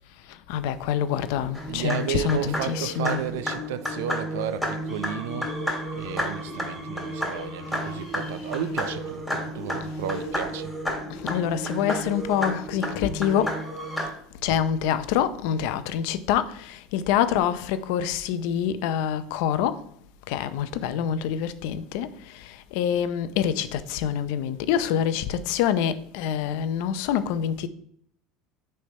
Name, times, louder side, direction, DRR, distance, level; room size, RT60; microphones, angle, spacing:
voice 1, 0.5-3.2 11.1-13.6 14.4-19.8 20.3-27.7, left 9 dB, 70° left, 0.6 m, -26 dB
sound 1, 1.5-14.1, equal, ahead, 2.1 m, -31 dB
voice 2, 1.7-5.5 5.9-10.7, right 10 dB, 90° right, 0.5 m, -33 dB
6.6 x 3.3 x 5.4 m
supercardioid pair, 135°, 0 cm